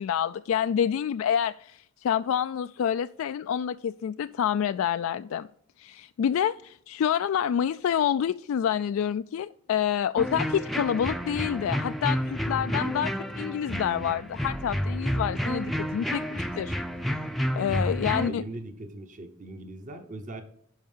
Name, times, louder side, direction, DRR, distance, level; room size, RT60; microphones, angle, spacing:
voice 1, 0.0-5.5 5.8-16.7 17.5-18.4, left 9 dB, 80° left, 0.3 m, -28 dB
sound 1, 10.2-18.3, equal, ahead, 0.5 m, -30 dB
voice 2, 18.0-20.4, right 2 dB, 40° right, 0.9 m, -40 dB
10.5 x 5.4 x 5.5 m
head